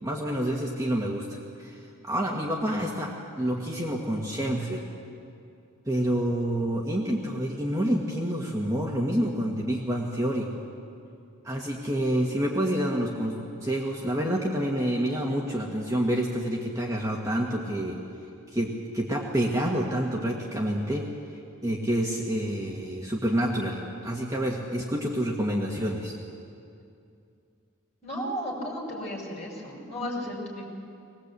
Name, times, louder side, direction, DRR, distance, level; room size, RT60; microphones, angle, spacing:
voice 1, 0.0-3.1 3.4-4.9 5.9-10.5 11.4-18.0 18.5-21.1 21.6-26.2, equal, 15° right, -2 dB, 1.7 m, -28 dB
voice 2, 28.0-30.7, equal, 30° left, -2 dB, 5.3 m, -34 dB
21.0 x 20.0 x 8.3 m, 2.5 s
head